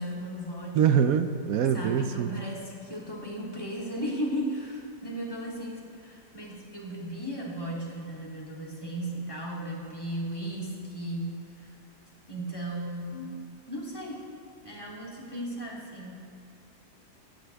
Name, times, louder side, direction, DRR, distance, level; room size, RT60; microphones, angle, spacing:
voice 1, 0.0-1.1 1.7-11.7 12.3-14.2 14.6-16.2, right 1 dB, 15° left, -4 dB, 3.1 m, -36 dB
voice 2, 0.7-2.3, right 8 dB, 65° right, 9 dB, 0.9 m, -24 dB
27.0 x 12.0 x 3.5 m, 2.3 s
omnidirectional pair, 1.8 m